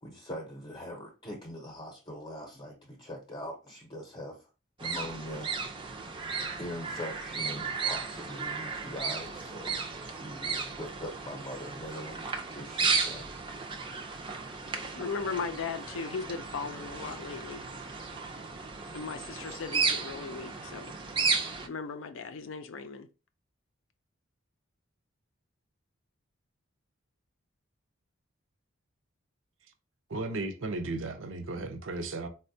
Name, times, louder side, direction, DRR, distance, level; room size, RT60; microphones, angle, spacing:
voice 1, 0.0-4.5 4.8-5.5 6.6-13.3, equal, 25° left, 0.7 m, -42 dB
sound 1, 4.8-21.7, right 4 dB, 25° right, 0.4 m, -34 dB
voice 2, 15.0-17.6 18.9-20.9 21.7-23.1, left 5 dB, 70° left, 0.4 m, -37 dB
voice 3, 30.1-32.3, right 2 dB, 70° right, 0.6 m, -35 dB
4.2 x 2.2 x 2.6 m
head